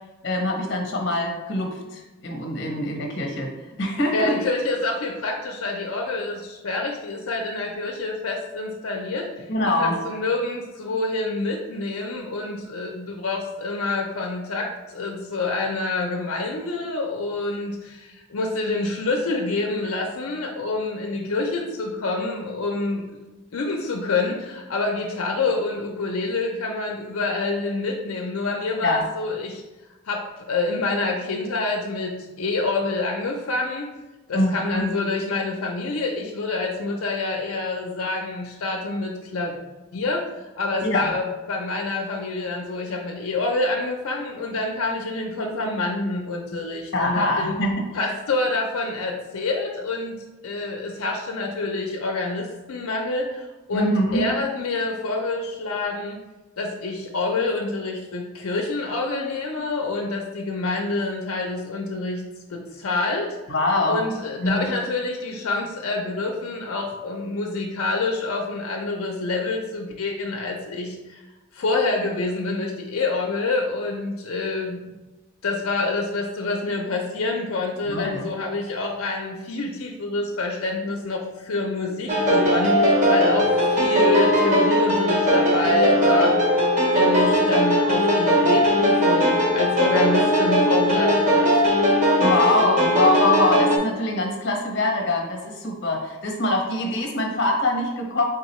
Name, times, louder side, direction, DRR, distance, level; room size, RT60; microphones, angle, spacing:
voice 1, 0.2-3.5 3.8-4.4 9.5-10.0 28.8-29.0 34.3-34.8 40.8-41.1 46.9-47.9 53.7-54.3 63.5-64.0 64.4-64.7 77.8-78.3 92.2-98.2, left 2 dB, 55° left, 2 dB, 0.8 m, -23 dB
voice 2, 4.1-9.3 9.8-23.1 23.5-29.6 30.1-33.9 34.3-39.6 39.9-47.6 47.9-56.2 56.6-62.2 62.5-63.5 63.9-71.2 71.5-74.9 75.4-86.4 86.9-91.6, left 3 dB, 85° left, 1 dB, 0.5 m, -27 dB
sound 1, 82.1-93.8, equal, 35° right, 0.7 m, -19 dB
3.7 x 3.6 x 3.1 m, 1.1 s
head